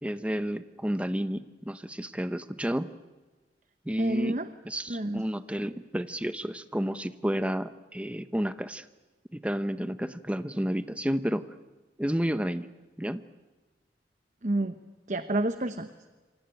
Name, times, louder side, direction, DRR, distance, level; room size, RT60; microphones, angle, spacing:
voice 1, 0.0-2.9 3.8-4.4 4.6-8.9 9.3-11.4 12.0-12.7 13.0-13.2, equal, 5° right, 12 dB, 0.8 m, -31 dB
voice 2, 4.0-4.5 4.9-5.2 14.4-14.8 15.1-15.9, right 1 dB, 45° right, 9 dB, 1.0 m, -29 dB
27.5 x 24.0 x 9.0 m, 1.3 s
head